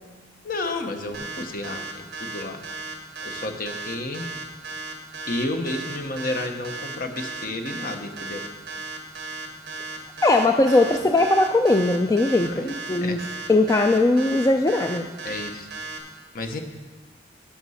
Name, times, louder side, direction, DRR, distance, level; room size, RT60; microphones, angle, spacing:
voice 1, 0.4-2.6 3.2-4.3 5.3-8.5 12.4-13.2 15.2-15.7 16.3-16.6, left 2 dB, 50° left, 5 dB, 0.9 m, -31 dB
sound 1, 1.1-16.0, right 3 dB, 60° right, 1.5 m, -35 dB
voice 2, 10.2-12.5 12.9-13.2 13.5-15.1, left 2 dB, 15° left, 5 dB, 0.3 m, -19 dB
12.5 x 5.9 x 5.6 m, 1.4 s
head